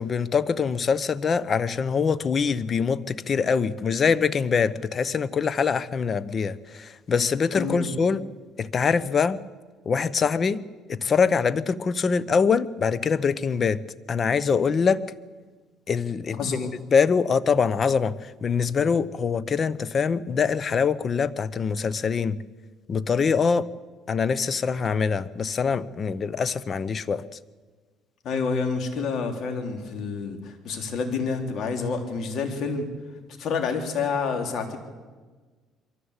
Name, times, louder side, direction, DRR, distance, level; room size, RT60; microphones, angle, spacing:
voice 1, 0.0-8.2 8.6-9.4 9.8-10.6 10.9-13.8 14.1-15.0 15.9-22.4 22.9-23.7 24.1-27.2, left 5 dB, 35° left, 17 dB, 0.8 m, -24 dB
voice 2, 7.5-7.9 16.4-16.7 28.2-32.8 33.4-34.8, left 5 dB, 55° left, 5 dB, 3.3 m, -28 dB
23.0 x 15.0 x 8.2 m, 1.4 s
cardioid pair, 110°, 0 cm